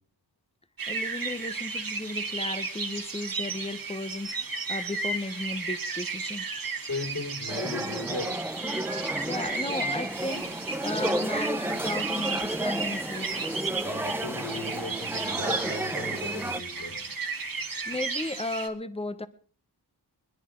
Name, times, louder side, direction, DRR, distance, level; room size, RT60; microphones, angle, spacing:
sound 1, 0.8-18.7, right 4 dB, 55° right, 1.9 m, -34 dB
voice 1, 0.9-6.5 9.2-13.6 17.9-19.3, left 2 dB, 15° left, 1.1 m, -35 dB
voice 2, 6.8-8.3 13.8-17.0, left 2 dB, 55° left, 5.8 m, -36 dB
sound 2, 7.5-16.6, right 1 dB, 5° right, 0.7 m, -33 dB
sound 3, 9.0-14.3 14.8-17.3 17.9-18.2, left 4 dB, 90° left, 2.4 m, -52 dB
26.0 x 10.0 x 3.9 m
wide cardioid pair, 70°, 41 cm